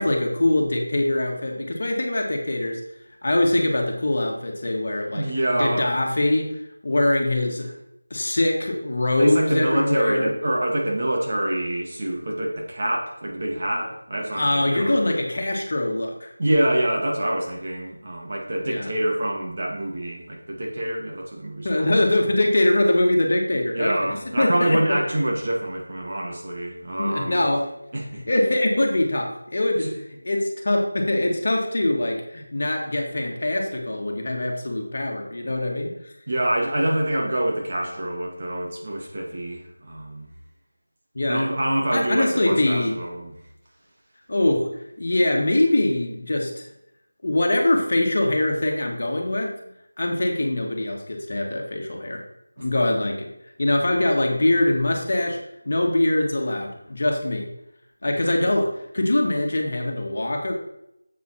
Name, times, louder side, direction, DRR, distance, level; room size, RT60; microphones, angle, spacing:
voice 1, 0.0-2.8 3.2-5.3 5.5-6.5 6.8-7.7 8.1-10.3 14.3-16.3 18.6-18.9 21.6-25.0 27.0-27.7 28.3-29.9 30.2-36.1 41.2-41.5 41.9-43.0 44.3-44.7 45.0-46.7 47.2-49.5 50.0-52.3 52.6-53.3 53.6-55.4 55.7-57.5 58.0-58.7 58.9-60.5, left 1 dB, 45° left, 1 dB, 2.0 m, -23 dB
voice 2, 5.1-5.9 9.2-15.0 16.4-22.0 23.7-27.4 27.9-28.2 29.8-29.9 36.3-40.3 41.3-43.4 52.6-52.7, right 1 dB, 35° right, -2 dB, 2.3 m, -26 dB
9.1 x 7.9 x 4.4 m, 0.82 s
figure-of-eight pair, 175°, 0 cm